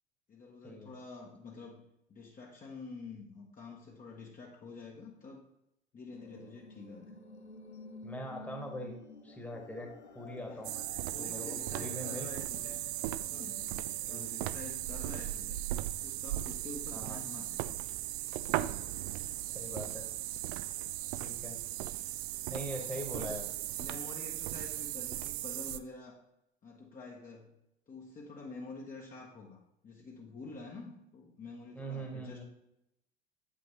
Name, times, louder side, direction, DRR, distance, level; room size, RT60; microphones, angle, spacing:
voice 1, 0.3-1.8 2.1-5.4 5.9-7.1 10.5-10.7 11.1-12.8 13.2-13.7 14.1-15.6 16.0-17.6 19.7-19.9 22.8-23.3 23.8-26.2 26.6-27.5 27.9-32.4, left 3 dB, 25° left, -1 dB, 1.1 m, -48 dB
sound 1, 6.1-14.1, left 2 dB, 85° left, 0.7 m, -52 dB
voice 2, 8.0-8.9 9.2-10.8 11.2-12.3 14.1-14.3 16.9-17.2 19.4-20.1 21.2-21.6 22.5-23.5 31.7-32.4, equal, 5° left, 1 dB, 1.4 m, -42 dB
sound 2, 10.6-25.8, right 14 dB, 50° right, 0.4 m, -37 dB
8.2 x 5.5 x 3.1 m, 0.83 s
figure-of-eight pair, 70°, 33 cm